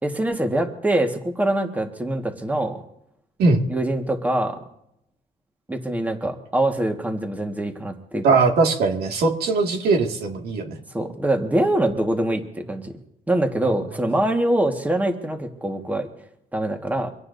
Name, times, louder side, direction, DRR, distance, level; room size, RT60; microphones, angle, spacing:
voice 1, 0.0-2.8 3.7-4.6 5.7-8.2 10.9-12.9 13.3-16.1 16.5-17.1, right 1 dB, 10° right, 4 dB, 1.6 m, -24 dB
voice 2, 8.2-10.8, right 3 dB, 70° right, 2 dB, 2.2 m, -20 dB
25.0 x 17.0 x 2.7 m, 0.79 s
cardioid pair, 110°, 17 cm